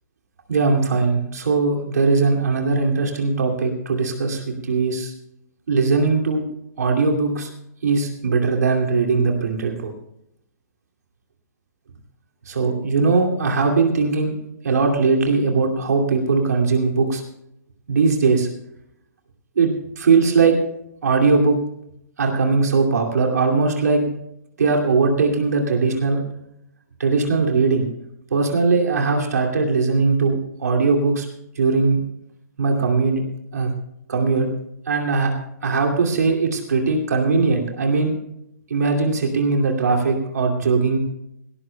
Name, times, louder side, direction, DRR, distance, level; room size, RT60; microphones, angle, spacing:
voice 1, 0.5-5.1 5.7-6.4 6.8-7.5 7.8-9.9 12.5-14.4 14.6-17.2 17.9-18.5 19.6-20.6 21.0-21.6 22.2-24.1 24.6-26.3 27.0-27.9 28.3-31.3 31.6-32.0 32.6-33.2 33.5-33.7 34.1-34.5 34.9-35.3 35.6-38.1 38.7-41.0, right 4 dB, 65° right, 1 dB, 2.5 m, -20 dB
18.0 x 18.0 x 2.2 m, 0.79 s
figure-of-eight pair, 125°, 10 cm